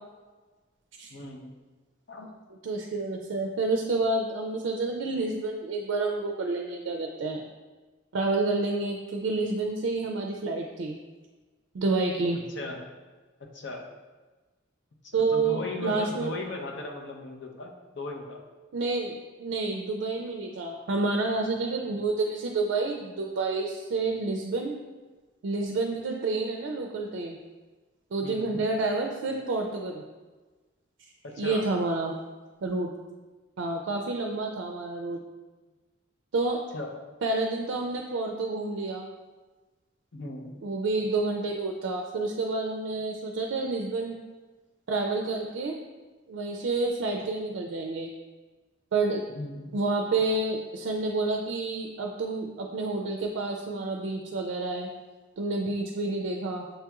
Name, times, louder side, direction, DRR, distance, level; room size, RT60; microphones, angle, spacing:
voice 1, 1.1-1.5 2.1-2.3 12.5-12.8 13.4-13.8 15.1-18.4 28.2-28.7 31.2-31.6 36.7-36.9 40.1-40.5 49.3-49.7, left 2 dB, 65° left, 2 dB, 0.6 m, -37 dB
voice 2, 2.6-7.4 8.1-11.0 11.7-12.4 15.1-16.3 18.7-24.7 25.4-27.4 28.1-30.0 31.4-32.1 32.6-32.9 33.6-35.2 36.3-36.6 37.2-39.1 40.6-44.2 44.9-45.7 46.3-48.1 48.9-49.2 49.7-54.9 55.4-56.7, right 3 dB, 75° right, 2 dB, 0.4 m, -29 dB
6.5 x 2.9 x 2.3 m, 1.3 s
head